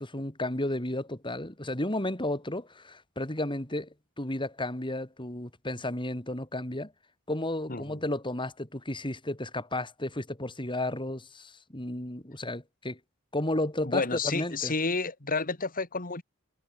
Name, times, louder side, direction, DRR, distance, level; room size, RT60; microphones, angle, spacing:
voice 1, 0.0-6.9 7.3-13.0 13.3-14.7, left 1 dB, 20° left, 3.7 m, -33 dB
voice 2, 7.7-8.0 13.8-16.2, left 3 dB, 40° left, 2.6 m, -30 dB
head